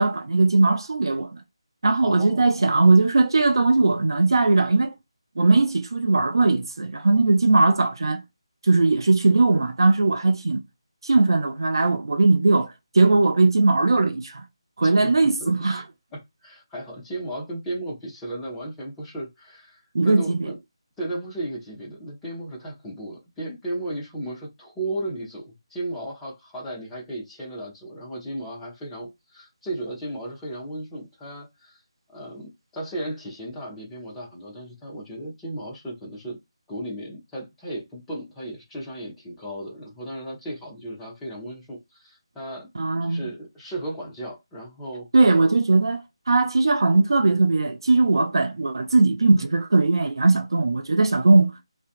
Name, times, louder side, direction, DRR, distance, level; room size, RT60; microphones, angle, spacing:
voice 1, 0.0-1.4 1.8-4.9 5.4-8.2 8.7-10.6 11.0-14.4 14.8-15.8 19.9-20.4 42.8-43.3 45.1-46.0 46.3-51.5, right 3 dB, 55° right, 0.3 m, -19 dB
voice 2, 2.0-2.5 14.8-15.1 15.4-15.8 16.1-20.6 21.0-31.8 32.1-36.4 36.7-42.7 43.0-45.1, right 1 dB, 5° left, 0.7 m, -35 dB
2.5 x 2.1 x 2.5 m
figure-of-eight pair, 155°, 3 cm